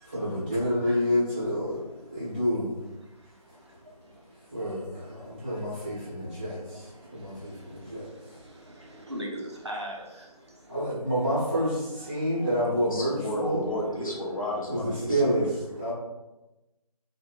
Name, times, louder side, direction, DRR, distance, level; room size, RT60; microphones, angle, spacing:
voice 1, 0.0-2.8 4.5-8.1 10.7-13.6 14.7-15.5 15.8-15.9, equal, 15° right, -10 dB, 0.8 m, -28 dB
voice 2, 9.1-10.1, equal, 45° right, -1 dB, 0.4 m, -35 dB
voice 3, 12.7-15.6, left 1 dB, 60° left, -2 dB, 0.6 m, -33 dB
2.7 x 2.1 x 2.3 m, 1.0 s
figure-of-eight pair, 165°, 20 cm